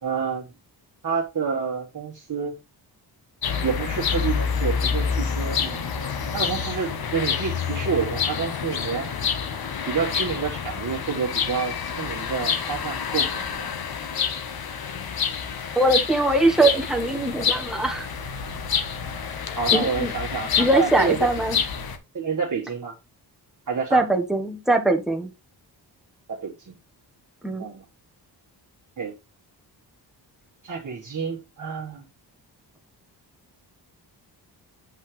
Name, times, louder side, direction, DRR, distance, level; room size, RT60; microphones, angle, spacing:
voice 1, 0.0-0.5 1.0-2.5 3.6-5.9 6.3-9.1 9.9-13.7 19.6-21.6 22.1-22.9 23.7-24.0 26.3-26.8 27.6-27.8 29.0-29.1 30.6-32.0, right 6 dB, 45° right, 1.5 m, -29 dB
sound 1, 3.4-22.0, left 6 dB, 60° left, 1.1 m, -27 dB
voice 2, 15.7-18.1 19.7-20.1 20.6-21.6 23.9-25.3 27.4-27.7, right 2 dB, ahead, 1.3 m, -21 dB
8.1 x 5.5 x 3.2 m
wide cardioid pair, 125°, 42 cm